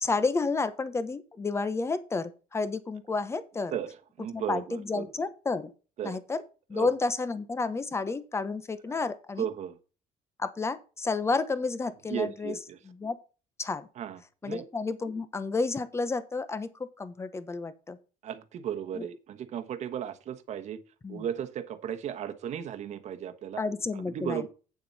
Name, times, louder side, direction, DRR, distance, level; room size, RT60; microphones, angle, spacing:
voice 1, 0.0-3.7 4.3-5.7 6.0-6.4 6.7-9.5 10.4-12.6 12.8-13.2 13.6-13.9 14.4-18.0 18.9-19.1 21.0-21.3 23.6-24.5, left 3 dB, 20° left, 14 dB, 0.9 m, -31 dB
voice 2, 4.2-5.0 6.0-6.2 6.7-6.9 8.9-9.0 9.4-9.8 12.1-12.8 14.0-14.2 14.4-14.6 18.2-20.8 21.1-23.6 24.1-24.5, right 9 dB, 50° right, 8 dB, 1.3 m, -35 dB
8.7 x 7.4 x 4.2 m, 0.34 s
cardioid pair, 140°, 15 cm